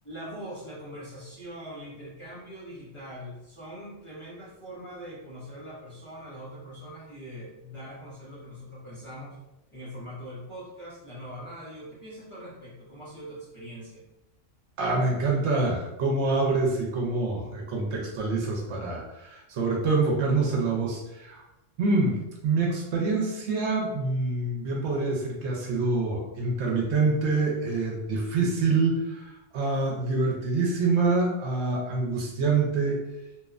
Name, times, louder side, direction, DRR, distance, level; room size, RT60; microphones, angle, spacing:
voice 1, 0.0-9.4 9.7-14.0, equal, 30° left, -9 dB, 0.7 m, -42 dB
voice 2, 14.8-21.4 21.8-33.0, right 3 dB, 70° right, -1 dB, 0.8 m, -26 dB
2.7 x 2.1 x 2.4 m, 0.94 s
omnidirectional pair, 1.2 m